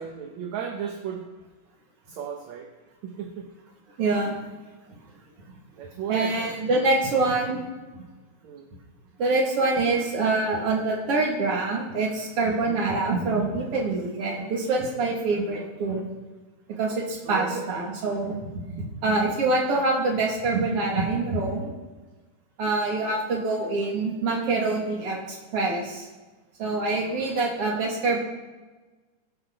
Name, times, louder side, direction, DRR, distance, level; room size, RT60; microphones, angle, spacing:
voice 1, 0.0-1.3 2.1-2.7 3.0-3.5 5.7-6.6 8.4-8.7 17.3-17.7 23.0-23.2 27.0-27.3, right 7 dB, 65° right, 2 dB, 2.2 m, -35 dB
voice 2, 4.0-4.3 4.9-5.0 6.1-7.6 7.9-8.1 9.2-16.0 16.8-21.7 22.6-26.1 26.6-28.2, right 3 dB, 45° right, -1 dB, 3.1 m, -25 dB
20.0 x 11.0 x 4.0 m, 1.2 s
omnidirectional pair, 3.9 m